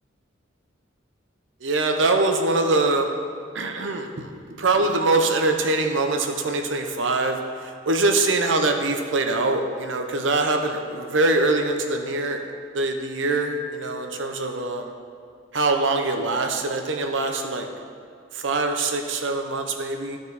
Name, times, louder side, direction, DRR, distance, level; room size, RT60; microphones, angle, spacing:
voice 1, 1.6-3.1 3.5-12.4 12.7-14.9 15.5-17.7 18.3-20.2, right 2 dB, 75° right, 4 dB, 0.8 m, -23 dB
13.5 x 4.7 x 4.1 m, 2.3 s
head